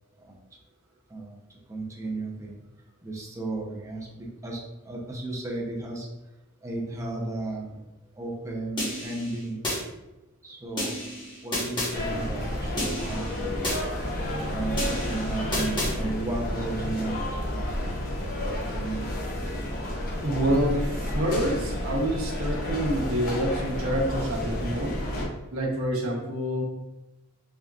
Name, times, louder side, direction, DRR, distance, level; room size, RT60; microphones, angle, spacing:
voice 1, 1.7-2.6 3.0-6.1 6.6-7.8 8.2-9.6 10.4-11.0 11.4-13.6 14.0-14.1 14.5-17.2 17.5-19.1, right 2 dB, 15° right, -2 dB, 0.6 m, -34 dB
minimal drumloop just snare, 8.8-9.8 10.8-11.9 12.8-13.8 14.8-15.9, left 1 dB, 20° left, 1.2 m, -31 dB
sound 1, 11.9-25.2, left 1 dB, 45° left, 0.8 m, -31 dB
Motor vehicle (road) / Accelerating revving vroom, 14.0-19.0, left 1 dB, 75° left, 0.4 m, -39 dB
voice 2, 20.2-25.0 25.5-26.6, equal, 75° right, -2 dB, 0.9 m, -27 dB
3.9 x 3.5 x 2.4 m, 1.0 s
head